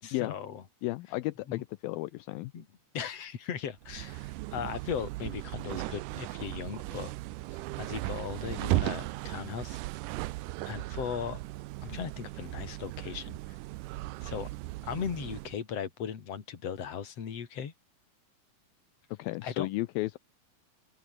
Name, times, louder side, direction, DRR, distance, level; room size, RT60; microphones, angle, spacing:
voice 1, 0.0-0.6 1.5-1.6 2.5-2.7 2.9-7.1 7.5-9.8 10.7-11.4 11.8-13.6 14.2-14.5 14.8-17.7 19.4-19.7, left 8 dB, 45° left, 3.3 m, -38 dB
voice 2, 0.8-2.5 19.2-20.2, left 19 dB, 80° left, 2.4 m, -33 dB
sound 1, 3.8-15.6, right 20 dB, 80° right, 1.9 m, -37 dB
open air
omnidirectional pair, 4.3 m